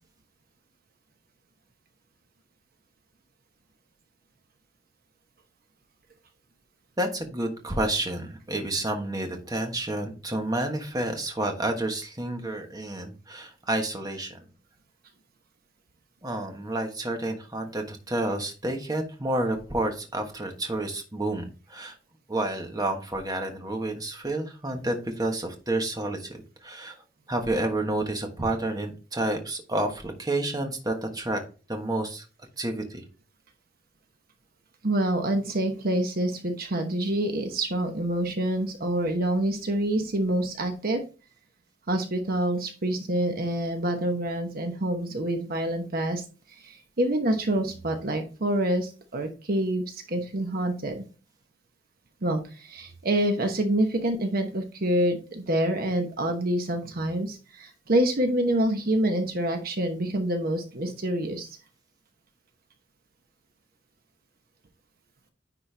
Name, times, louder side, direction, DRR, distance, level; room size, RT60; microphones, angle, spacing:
voice 1, 7.0-14.4 16.2-21.9 22.3-27.0 27.3-31.4 31.7-32.2 32.6-33.0, right 1 dB, 20° right, 4 dB, 1.3 m, -30 dB
voice 2, 34.8-41.0 41.9-46.2 46.5-51.0 52.2-61.5, right 1 dB, 50° right, 5 dB, 1.0 m, -27 dB
9.9 x 4.4 x 3.3 m, 0.34 s
head